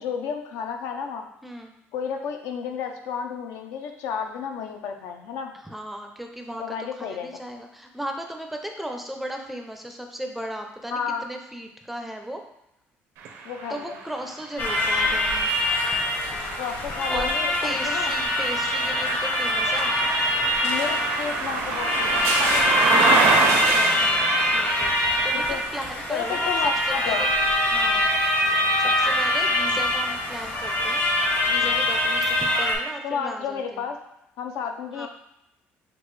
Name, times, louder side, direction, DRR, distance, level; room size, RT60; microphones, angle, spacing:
voice 1, 0.0-1.3 1.9-5.5 6.6-7.3 10.9-11.2 13.4-14.0 16.6-18.1 20.6-23.5 25.3-25.6 26.1-27.3 33.0-34.0 34.4-35.1, left 6 dB, 90° left, 4 dB, 0.6 m, -31 dB
voice 2, 5.6-12.4 13.7-15.5 17.1-17.3 17.6-20.0 23.6-26.5 27.0-27.3 27.7-31.0 31.5-33.8 34.9-35.1, equal, 5° right, 3 dB, 0.4 m, -36 dB
sound 1, 13.2-29.1 29.7-30.9, right 4 dB, 80° right, 0.7 m, -29 dB
sound 2, 14.6-32.8, left 1 dB, 45° left, 0.9 m, -24 dB
6.0 x 2.4 x 3.1 m, 0.86 s
cardioid pair, 140°, 5 cm